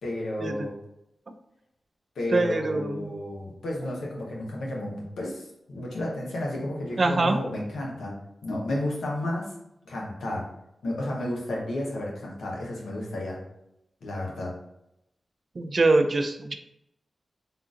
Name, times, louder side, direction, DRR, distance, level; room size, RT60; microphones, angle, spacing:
voice 1, 0.0-0.7 2.2-8.1 8.4-9.5 9.9-10.5 10.8-13.4 14.0-14.5, left 1 dB, 90° left, -3 dB, 0.8 m, -32 dB
voice 2, 2.3-3.1 7.0-7.4 15.6-16.5, right 2 dB, 50° right, 7 dB, 0.4 m, -23 dB
3.7 x 2.4 x 2.4 m, 0.83 s
cardioid pair, 45°, 0 cm